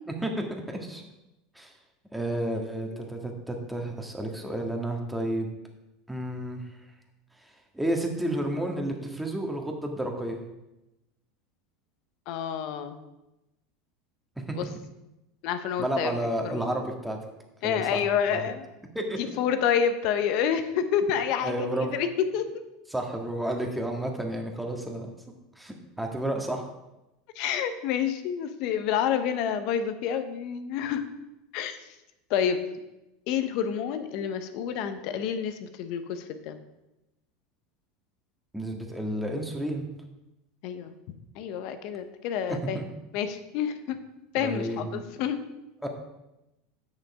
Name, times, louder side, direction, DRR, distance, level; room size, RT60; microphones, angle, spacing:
voice 1, 0.7-1.0 1.5-1.7 2.1-5.5 6.1-6.7 7.7-10.4 14.6-14.7 15.8-17.2 17.6-18.5 18.9-19.2 21.4-21.9 22.9-25.1 25.6-26.7 38.5-39.9 42.7-42.8 44.4-45.0 45.8-45.9, right 1 dB, 5° right, 2 dB, 1.8 m, -31 dB
voice 2, 12.3-13.0 14.6-14.7 15.4-16.8 17.6-18.7 19.2-22.5 27.3-31.0 31.5-31.8 32.3-32.7 33.3-36.6 40.6-40.9 41.3-42.8 43.1-44.0 44.3-45.4, left 8 dB, 60° left, 9 dB, 1.0 m, -28 dB
9.0 x 6.5 x 4.9 m, 0.95 s
hypercardioid pair, 95°, 0 cm